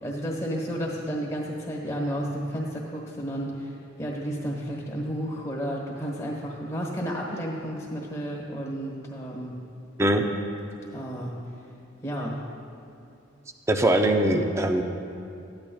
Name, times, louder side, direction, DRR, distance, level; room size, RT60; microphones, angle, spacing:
voice 1, 0.0-9.6 10.9-11.3 12.0-12.4, equal, 15° left, -3 dB, 1.2 m, -32 dB
voice 2, 13.7-14.8, right 1 dB, 15° right, 5 dB, 0.4 m, -21 dB
14.0 x 10.5 x 2.3 m, 2.6 s
head